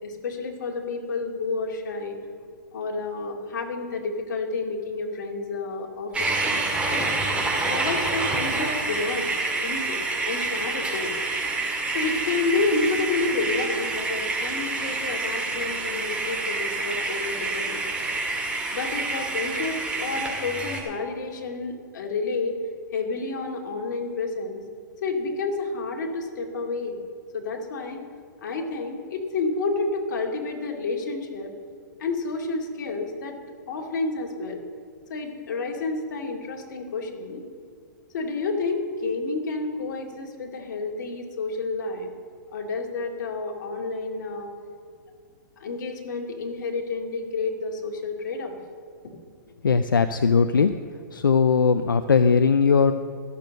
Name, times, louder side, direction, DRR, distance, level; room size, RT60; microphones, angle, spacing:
voice 1, 0.0-2.2 2.7-6.4 6.9-7.1 7.7-9.3 9.6-11.1 11.9-17.8 18.7-22.6 22.9-24.6 25.0-27.0 27.3-28.0 28.4-31.5 32.0-33.4 33.7-34.6 35.1-37.4 38.1-42.1 42.5-44.5 45.6-48.6 49.0-49.1, left 3 dB, 60° left, 1 dB, 2.4 m, -30 dB
sound 1, 6.1-20.8, right 3 dB, 10° right, 2.0 m, -28 dB
voice 2, 49.6-50.7 51.1-52.9, left 5 dB, 90° left, 11 dB, 0.5 m, -19 dB
14.0 x 6.9 x 7.6 m, 2.2 s
hypercardioid pair, 125°, 11 cm